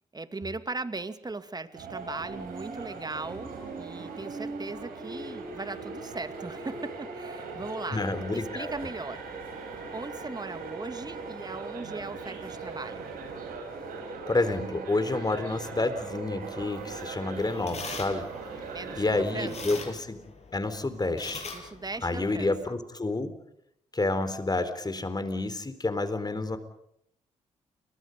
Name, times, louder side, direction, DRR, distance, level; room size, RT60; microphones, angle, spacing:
voice 1, 0.1-8.0 8.3-9.2 9.9-13.0 18.7-19.8 21.5-22.5, right 3 dB, 25° right, 10 dB, 2.4 m, -38 dB
sound 1, 1.7-19.8, right 4 dB, 70° right, 7.7 m, -39 dB
voice 2, 7.9-8.7 14.3-18.3 19.0-20.2 20.5-21.4 22.0-23.3 23.9-26.6, left 2 dB, 25° left, 11 dB, 4.0 m, -29 dB
sound 2, 16.6-22.7, left 4 dB, 45° left, 7.2 m, -44 dB
29.0 x 24.5 x 5.4 m, 0.76 s
hypercardioid pair, 40°, 15 cm